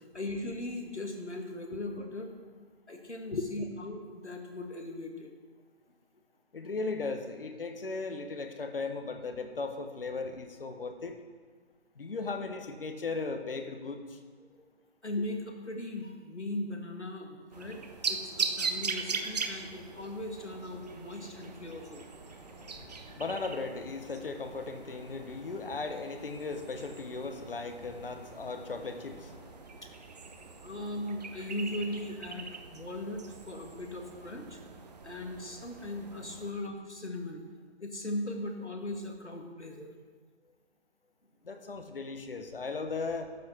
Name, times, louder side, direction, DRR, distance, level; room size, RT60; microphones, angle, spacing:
voice 1, 0.1-2.3 2.9-5.3 15.0-22.0 30.6-34.6 35.0-37.4 37.8-39.9, left 1 dB, 90° left, 2 dB, 1.7 m, -38 dB
voice 2, 6.5-11.2 12.0-14.2 21.5-29.8 30.3-30.6 41.4-43.3, left 3 dB, 55° left, 7 dB, 1.2 m, -37 dB
sound 1, 17.5-36.5, right 5 dB, 40° right, 0.7 m, -41 dB
12.0 x 7.7 x 4.4 m, 1.5 s
figure-of-eight pair, 140°, 33 cm